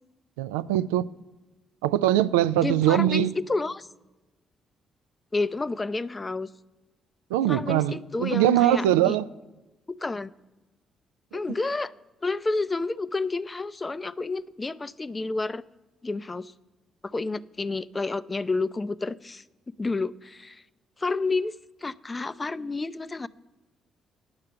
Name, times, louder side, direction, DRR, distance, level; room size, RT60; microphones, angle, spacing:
voice 1, 0.4-1.1 1.8-3.3 7.3-9.3 11.3-11.4, right 12 dB, 80° right, 0.3 m, -22 dB
voice 2, 2.6-3.9 5.3-6.5 7.5-9.2 10.0-10.3 11.3-11.9 12.2-15.6 16.0-16.5 17.0-19.4 19.8-20.6 21.0-21.5 21.8-23.3, left 3 dB, 30° left, 0.5 m, -30 dB
9.6 x 6.6 x 7.5 m
hypercardioid pair, 45°, 0 cm